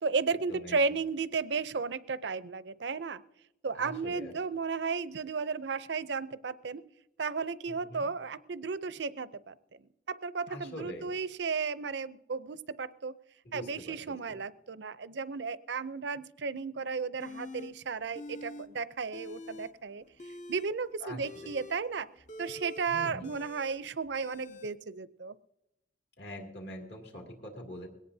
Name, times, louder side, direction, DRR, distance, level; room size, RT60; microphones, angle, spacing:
voice 1, 0.0-3.2 3.6-6.8 7.2-9.5 10.1-13.1 13.5-20.0 20.5-22.1 22.4-25.3, right 5 dB, 65° right, 15 dB, 0.6 m, -34 dB
voice 2, 3.7-4.3 7.7-8.1 10.5-11.1 13.4-14.4 21.0-21.5 22.9-23.3 26.2-27.9, equal, 60° left, 0 dB, 2.5 m, -44 dB
sound 1, 17.2-17.7 18.1-18.7 18.9-19.7 20.1-24.7, left 1 dB, 40° left, 0.7 m, -46 dB
21.5 x 18.0 x 2.7 m, 0.88 s
head